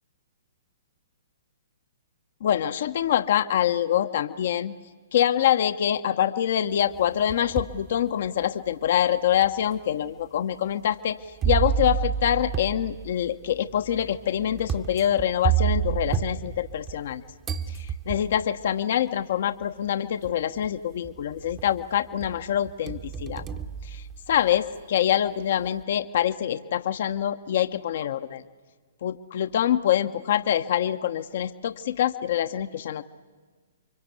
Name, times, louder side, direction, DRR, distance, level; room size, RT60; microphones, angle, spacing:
voice 1, 2.4-4.7 5.1-11.2 11.4-17.2 17.7-23.4 23.9-28.4 29.0-33.0, left 10 dB, 55° left, 9 dB, 1.0 m, -25 dB
sound 1, 6.9-7.8 8.4-8.5 9.4-9.5 11.4-17.1 17.4-18.5 19.6-19.7 20.2-20.7 21.0-21.8 22.2-24.6, right 9 dB, 25° right, 1.3 m, -29 dB
29.5 x 24.5 x 8.3 m, 1.4 s
hypercardioid pair, 125°, 0 cm